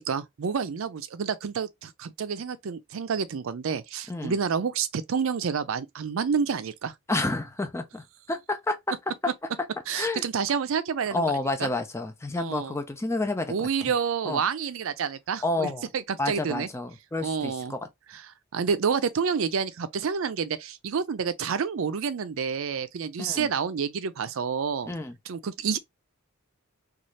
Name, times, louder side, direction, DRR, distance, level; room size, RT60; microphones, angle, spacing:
voice 1, 0.0-6.9 9.9-11.2 11.6-11.7 12.4-12.7 13.5-16.7 17.2-17.7 18.1-18.3 18.5-24.9 25.3-25.8, right 6 dB, 65° right, 0.4 m, -29 dB
voice 2, 7.1-8.9 9.2-9.3 9.9-10.2 11.1-13.7 14.2-14.4 15.4-15.8 16.2-17.8 23.2-23.5 24.9-25.1, left 2 dB, 15° left, 0.5 m, -29 dB
2.7 x 2.4 x 3.1 m
head